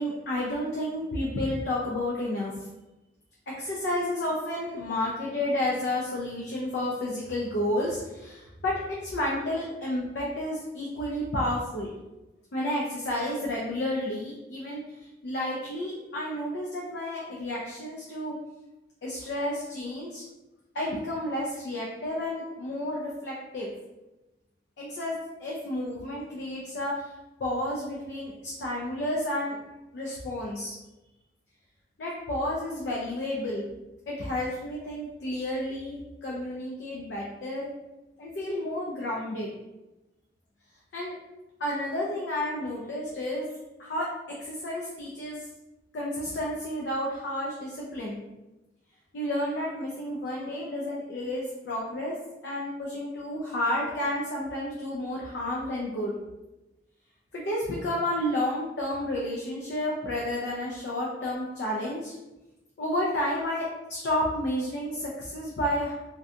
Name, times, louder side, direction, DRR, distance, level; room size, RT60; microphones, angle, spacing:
voice 1, 0.0-2.7 3.6-11.9 12.5-14.8 15.2-18.4 19.0-20.2 20.7-23.7 24.8-27.1 27.4-29.6 29.9-30.8 32.0-33.6 34.1-37.7 38.2-39.6 40.9-41.1 41.6-43.5 43.8-44.1 44.4-45.4 45.9-48.2 49.1-52.1 52.4-56.1 57.3-62.1 62.8-66.0, left 1 dB, 70° left, -4 dB, 0.4 m, -31 dB
2.6 x 2.2 x 2.4 m, 1.0 s
head